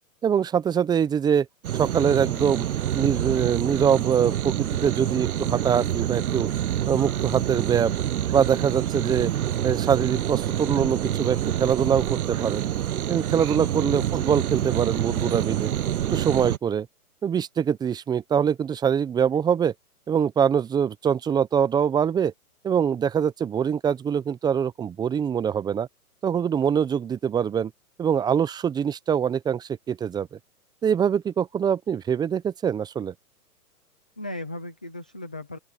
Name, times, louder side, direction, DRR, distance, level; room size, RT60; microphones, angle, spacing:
voice 1, 0.2-1.5 1.7-2.7 2.9-6.5 6.9-7.9 8.3-9.3 9.6-12.6 13.1-15.7 16.1-16.9 17.2-19.7 20.1-22.3 22.6-25.9 26.2-27.7 28.0-30.4 30.8-33.1, right 8 dB, 10° right, 0.8 m, -24 dB
sound 1, 1.6-16.6, right 11 dB, 70° right, 1.0 m, -27 dB
voice 2, 13.6-14.1 34.2-35.6, left 2 dB, 5° left, 0.3 m, -37 dB
open air
hypercardioid pair, 130°, 45 cm